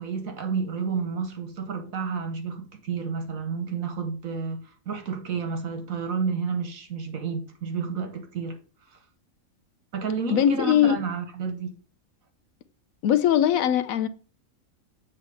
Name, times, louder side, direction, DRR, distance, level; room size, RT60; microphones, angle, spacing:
voice 1, 0.0-8.6 8.9-9.0 9.9-11.7, right 5 dB, 75° right, 1.6 m, -31 dB
voice 2, 10.3-11.0 13.0-14.1, left 10 dB, 80° left, 1.0 m, -20 dB
7.6 x 3.2 x 6.2 m
omnidirectional pair, 1.4 m